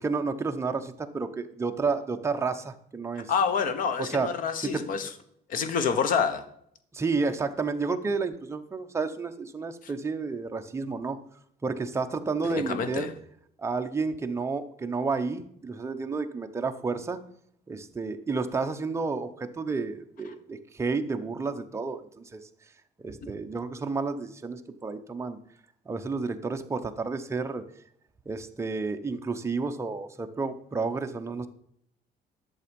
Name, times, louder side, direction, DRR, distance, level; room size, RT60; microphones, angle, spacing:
voice 1, 0.0-3.3 4.0-4.3 4.6-4.8 6.9-11.2 11.6-13.1 13.6-17.2 17.7-22.5 23.0-25.4 25.9-27.6 28.3-31.5, right 4 dB, 15° right, 6 dB, 0.8 m, -31 dB
voice 2, 3.3-5.1 5.5-6.4 12.4-13.1, left 6 dB, 55° left, 10 dB, 1.2 m, -27 dB
11.5 x 6.9 x 5.3 m, 0.70 s
cardioid pair, 155°, 17 cm